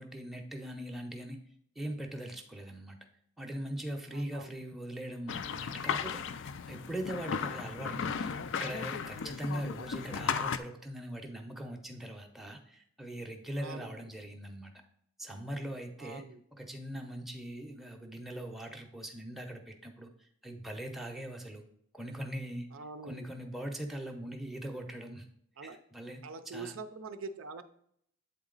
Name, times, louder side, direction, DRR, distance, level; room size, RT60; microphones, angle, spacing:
voice 1, 0.0-1.4 1.8-3.0 3.4-8.3 8.6-14.7 15.2-16.2 16.5-21.6 21.9-22.7 23.0-25.3 25.6-26.2 26.5-26.7, right 1 dB, ahead, 2 dB, 0.6 m, -41 dB
voice 2, 4.1-4.8 13.6-14.1 16.0-16.4 22.7-23.3 25.6-25.8 26.2-27.6, right 4 dB, 65° right, 10 dB, 0.5 m, -44 dB
sound 1, 5.3-10.6, left 6 dB, 60° left, 0.4 m, -35 dB
8.0 x 4.0 x 3.8 m, 0.68 s
head